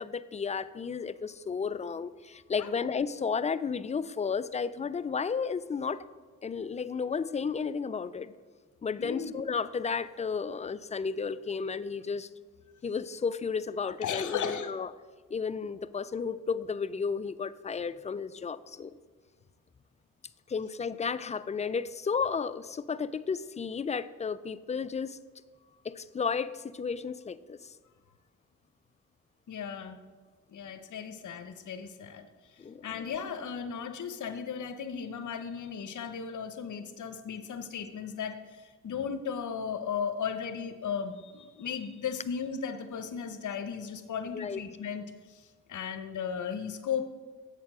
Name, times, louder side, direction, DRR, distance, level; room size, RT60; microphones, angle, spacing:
voice 1, 0.0-6.0 6.4-8.3 8.8-12.3 12.8-14.9 15.3-18.9 20.5-25.2 25.8-27.7 32.6-32.8 44.3-44.6, left 5 dB, 20° left, 15 dB, 0.3 m, -33 dB
voice 2, 9.0-9.3 14.0-14.7 29.5-30.0 30.5-47.1, left 7 dB, 60° left, 9 dB, 0.8 m, -36 dB
7.9 x 4.3 x 6.2 m, 1.4 s
supercardioid pair, 50°, 34 cm